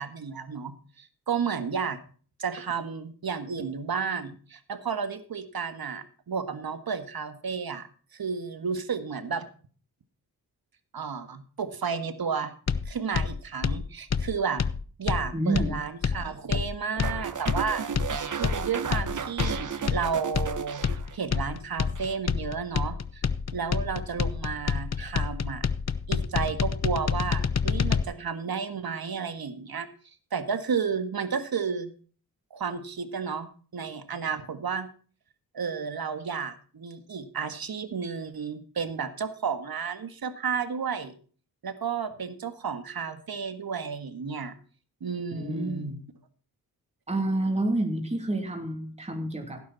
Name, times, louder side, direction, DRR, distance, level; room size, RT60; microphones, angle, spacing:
voice 1, 0.0-2.0 2.4-7.9 8.1-9.5 10.9-12.5 12.8-14.6 15.0-17.8 18.3-23.2 23.5-25.7 26.1-29.9 30.3-31.9 32.5-34.9 35.5-41.1 41.6-44.5 45.0-45.9, right 6 dB, 65° right, 9 dB, 1.8 m, -32 dB
sound 1, 12.7-28.0, left 6 dB, 45° left, 0.8 m, -28 dB
voice 2, 15.3-15.8 45.3-46.0 47.1-49.6, right 1 dB, 15° right, 3 dB, 2.7 m, -29 dB
sound 2, 17.0-21.5 21.7-22.2, right 6 dB, 50° right, 1.1 m, -34 dB
16.0 x 9.4 x 4.1 m, 0.41 s
cardioid pair, 60°, 38 cm